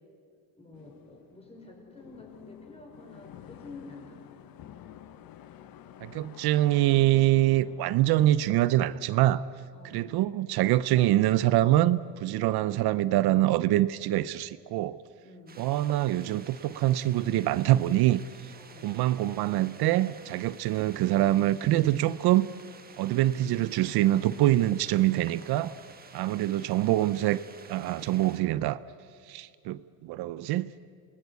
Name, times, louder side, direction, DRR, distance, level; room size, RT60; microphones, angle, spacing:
voice 1, 0.6-4.2 9.7-10.1 15.2-15.6 18.6-18.9, left 3 dB, 15° left, 2 dB, 4.9 m, -49 dB
sound 1, 0.7-9.5, left 10 dB, 60° left, 1.2 m, -50 dB
voice 2, 6.0-9.4 9.8-15.0 15.6-18.2 18.8-22.5 23.0-25.7 26.1-27.4 27.7-28.8 29.3-30.7, right 14 dB, 70° right, 16 dB, 0.7 m, -25 dB
sound 2, 15.5-28.4, right 5 dB, 20° right, 1.4 m, -50 dB
28.0 x 18.5 x 8.3 m, 2.3 s
cardioid pair, 155°, 40 cm